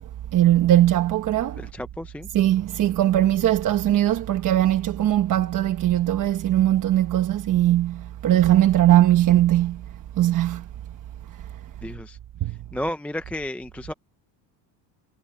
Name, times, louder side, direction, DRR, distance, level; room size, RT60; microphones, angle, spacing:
voice 1, 0.3-1.6 2.3-9.8 10.2-10.6 12.4-12.6, right 13 dB, 40° right, 1.1 m, -20 dB
voice 2, 1.6-2.3 11.8-12.2 12.5-13.9, left 1 dB, 5° left, 0.4 m, -33 dB
cardioid pair, 140°, 48 cm